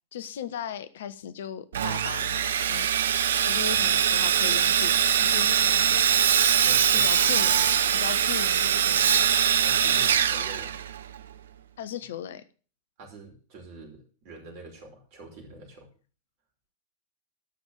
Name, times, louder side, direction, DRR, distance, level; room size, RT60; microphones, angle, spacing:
voice 1, 0.1-2.9 3.5-4.9 5.2-6.2 6.9-7.7 7.9-9.3 11.8-12.4, left 9 dB, 60° left, 13 dB, 0.9 m, -38 dB
Sawing, 1.7-11.2, right 8 dB, 65° right, 0.6 m, -22 dB
voice 2, 6.5-7.1 7.5-7.8 9.6-10.8 13.0-15.9, right 1 dB, 45° right, 1 dB, 5.2 m, -45 dB
12.5 x 6.2 x 6.9 m, 0.38 s
figure-of-eight pair, 90°, 0 cm